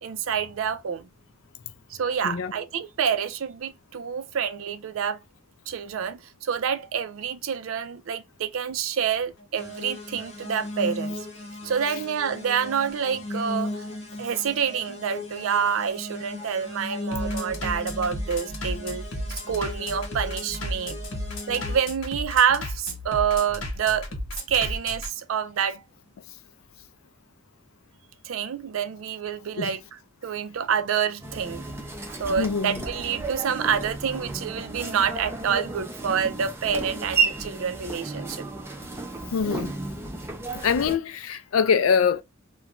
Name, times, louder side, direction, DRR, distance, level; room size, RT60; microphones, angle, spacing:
voice 1, 0.0-1.1 1.9-5.2 5.7-11.3 11.6-13.9 14.2-21.0 21.5-24.1 24.5-25.8 28.2-31.7 32.2-38.5, right 7 dB, 70° right, 0.4 m, -27 dB
Bass drum, 9.1-25.1, left 1 dB, 60° left, 1.0 m, -35 dB
sound 1, 9.6-21.9, left 1 dB, 30° left, 0.8 m, -37 dB
sound 2, 31.2-41.0, right 4 dB, 10° right, 0.4 m, -32 dB
voice 2, 32.3-32.8 39.3-39.7 40.5-42.2, left 6 dB, 75° left, 0.4 m, -24 dB
2.4 x 2.2 x 2.9 m
head